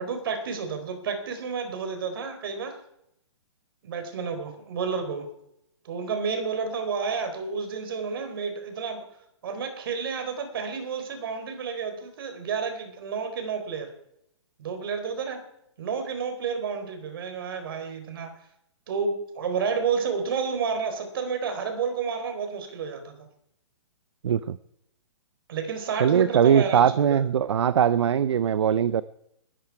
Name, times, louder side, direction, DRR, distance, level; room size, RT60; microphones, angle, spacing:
voice 1, 0.0-2.8 3.8-5.2 5.8-9.0 9.4-13.9 14.6-15.5 15.8-18.3 18.9-23.2 25.5-27.2, right 5 dB, 50° right, 7 dB, 4.1 m, -30 dB
voice 2, 24.2-24.6 26.0-29.0, right 8 dB, 65° right, 16 dB, 0.8 m, -21 dB
21.5 x 14.0 x 4.8 m, 0.76 s
hypercardioid pair, 170°, 16 cm